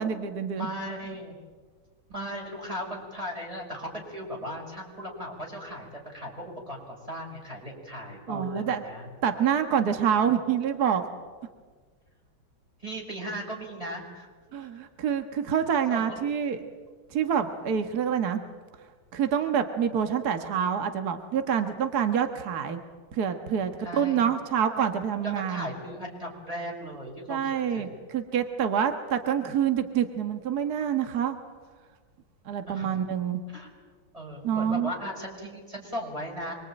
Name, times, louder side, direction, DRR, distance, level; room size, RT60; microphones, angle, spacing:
voice 1, 0.0-0.7 8.3-8.8 9.2-11.0 14.5-16.6 17.1-18.4 19.1-22.8 23.1-25.7 27.3-27.9 28.1-31.4 32.5-33.4 34.4-34.9, right 8 dB, 50° right, 7 dB, 1.9 m, -27 dB
voice 2, 0.6-1.3 2.1-9.1 12.8-14.3 14.6-14.7 15.5-15.6 15.9-16.2 23.8-24.2 25.2-28.0 32.7-33.0 33.5-33.7 34.1-36.5, equal, 15° right, -2 dB, 6.0 m, -37 dB
26.0 x 23.5 x 9.0 m, 1.5 s
omnidirectional pair, 2.3 m